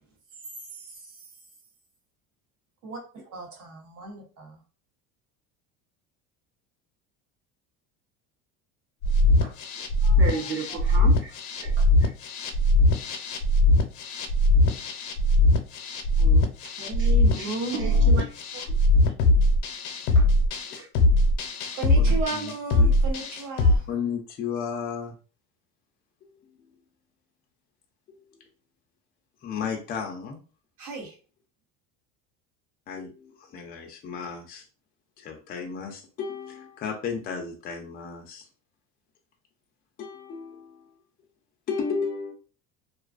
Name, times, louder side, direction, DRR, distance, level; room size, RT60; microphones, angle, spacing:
voice 1, 0.7-1.3 2.8-4.6 21.7-23.9 30.8-31.1, right 3 dB, 60° right, 1.0 m, -36 dB
sound 1, 9.0-23.8, left 2 dB, 75° left, 0.7 m, -21 dB
voice 2, 10.0-12.1 16.2-18.7 20.2-20.3 20.8-20.9, right 3 dB, 35° right, 0.7 m, -34 dB
voice 3, 22.0-22.5 22.8-22.9 23.9-25.1 26.2-26.6 28.1-28.4 29.4-30.4 32.9-34.6 35.2-38.4 40.0-40.9 41.7-42.3, left 6 dB, 25° left, 0.4 m, -34 dB
2.4 x 2.3 x 2.4 m
cardioid pair, 145°, 36 cm